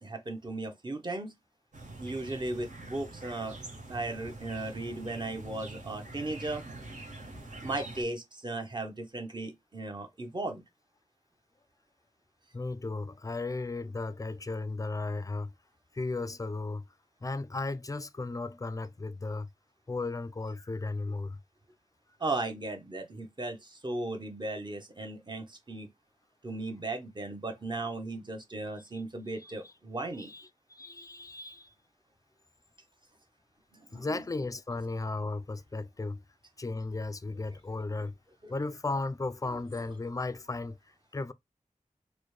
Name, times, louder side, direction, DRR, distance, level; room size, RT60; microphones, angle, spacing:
voice 1, 0.0-1.3 2.0-3.6 3.9-6.6 7.6-10.6 22.2-25.9 26.4-30.3 33.7-34.1 38.4-38.5, right 2 dB, 35° right, 0.8 m, -36 dB
sound 1, 1.7-8.0, right 2 dB, 70° right, 1.0 m, -45 dB
voice 2, 12.5-15.5 15.9-16.9 17.2-19.5 19.9-21.4 29.4-29.7 30.2-31.7 33.9-36.2 36.6-38.2 38.5-41.3, left 3 dB, 25° left, 0.3 m, -35 dB
4.1 x 2.1 x 3.2 m
wide cardioid pair, 75°, 13 cm